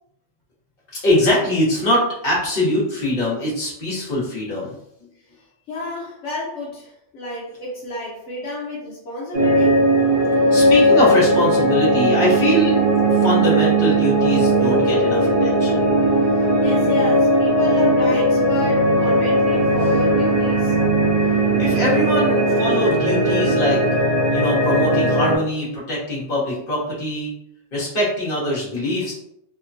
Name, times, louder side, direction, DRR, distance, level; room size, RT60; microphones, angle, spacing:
voice 1, 1.0-4.7 10.5-12.8 13.1-15.8 21.6-23.8 24.3-27.3 27.7-29.1, left 1 dB, 50° left, -7 dB, 1.3 m, -22 dB
voice 2, 5.7-9.8 16.3-20.7, left 2 dB, 80° left, -5 dB, 1.1 m, -30 dB
sound 1, 9.3-25.4, right 1 dB, 50° right, 0.9 m, -18 dB
3.1 x 2.2 x 2.5 m, 0.77 s
omnidirectional pair, 1.2 m